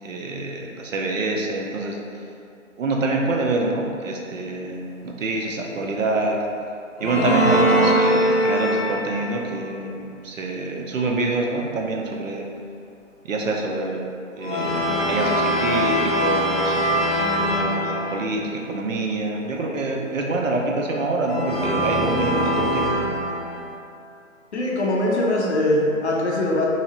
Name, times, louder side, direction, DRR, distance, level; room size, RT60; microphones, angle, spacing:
voice 1, 0.0-2.0 2.8-6.4 7.0-12.5 13.2-14.0 14.4-22.8, right 2 dB, 75° right, 0 dB, 0.6 m, -26 dB
sound 1, 7.0-9.4 14.4-18.4 21.3-23.7, equal, ahead, 0.4 m, -22 dB
voice 2, 24.5-26.6, left 1 dB, 55° left, -3 dB, 0.6 m, -21 dB
2.8 x 2.3 x 2.8 m, 2.5 s
hypercardioid pair, 170°, 39 cm